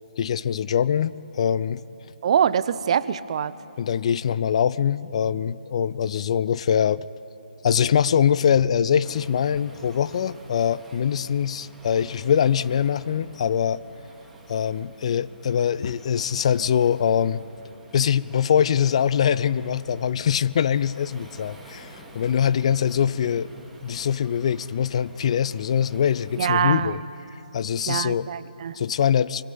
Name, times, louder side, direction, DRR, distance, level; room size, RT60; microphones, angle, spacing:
voice 1, 0.2-1.8 3.8-7.0 7.6-13.8 14.5-17.4 17.9-23.5 23.8-27.0 27.5-28.3 28.7-29.4, left 8 dB, 35° left, 18 dB, 0.5 m, -23 dB
voice 2, 2.2-3.5 26.4-27.0 27.9-28.8, right 8 dB, 40° right, 16 dB, 0.8 m, -24 dB
Waves surf, 9.0-26.7, right 1 dB, ahead, 2.7 m, -49 dB
25.0 x 23.0 x 9.4 m, 2.9 s
figure-of-eight pair, 150°, 5 cm